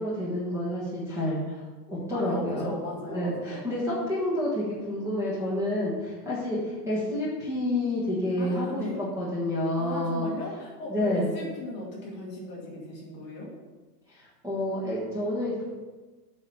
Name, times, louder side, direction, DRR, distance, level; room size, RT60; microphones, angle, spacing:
voice 1, 0.0-2.7 3.1-8.8 9.2-10.3 10.9-11.3 14.1-15.6, left 1 dB, 5° right, -8 dB, 1.4 m, -29 dB
voice 2, 2.0-3.6 8.4-9.0 9.8-13.5, left 1 dB, 20° left, -4 dB, 1.7 m, -37 dB
8.6 x 4.1 x 6.8 m, 1.3 s
supercardioid pair, 165°, 48 cm